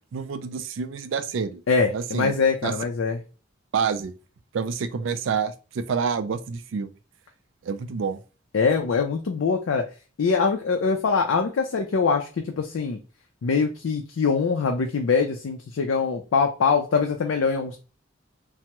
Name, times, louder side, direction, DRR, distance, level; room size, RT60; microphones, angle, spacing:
voice 1, 0.1-1.6 1.9-2.3 2.6-2.7 3.7-4.1 4.5-6.9 7.6-8.2, right 6 dB, 70° right, 0.4 m, -28 dB
voice 2, 1.7-3.2 8.5-9.9 10.2-13.0 13.4-17.8, left 5 dB, 80° left, 0.4 m, -23 dB
3.3 x 2.0 x 2.9 m
head